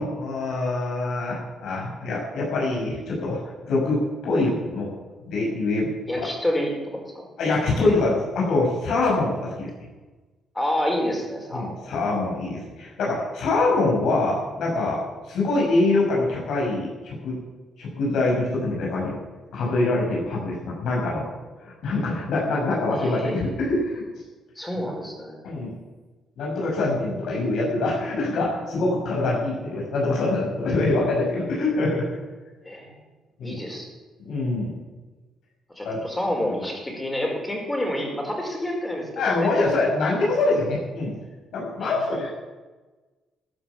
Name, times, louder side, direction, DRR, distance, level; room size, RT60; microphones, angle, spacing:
voice 1, 0.0-4.9 5.2-5.9 6.1-6.3 7.4-9.7 11.5-15.0 15.3-17.3 17.8-19.2 19.5-21.2 21.6-24.0 25.4-25.7 26.4-32.1 33.4-33.6 34.2-34.7 35.8-36.0 39.2-41.1 41.5-42.3, left 2 dB, 75° left, -3 dB, 6.1 m, -24 dB
voice 2, 6.1-7.2 10.5-11.9 22.9-23.3 24.5-25.4 32.6-32.9 33.4-33.9 35.8-39.1 39.3-39.5 41.8-42.0, left 1 dB, 15° left, 1 dB, 4.7 m, -28 dB
14.5 x 9.5 x 7.1 m, 1.2 s
cardioid pair, 90°, 0 cm